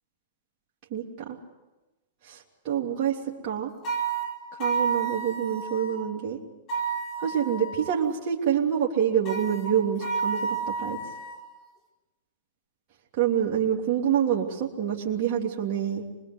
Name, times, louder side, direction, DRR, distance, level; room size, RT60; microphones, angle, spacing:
voice 1, 0.9-1.4 2.3-2.4 2.6-3.2 3.4-3.7 4.6-6.4 7.2-11.0 13.2-16.0, right 9 dB, 45° right, -3 dB, 3.3 m, -26 dB
sound 1, 3.8-6.0 6.7-7.9 9.3-11.4, right 5 dB, 35° left, 4.9 m, -30 dB
25.0 x 21.5 x 8.2 m, 1.1 s
hypercardioid pair, 125°, 0 cm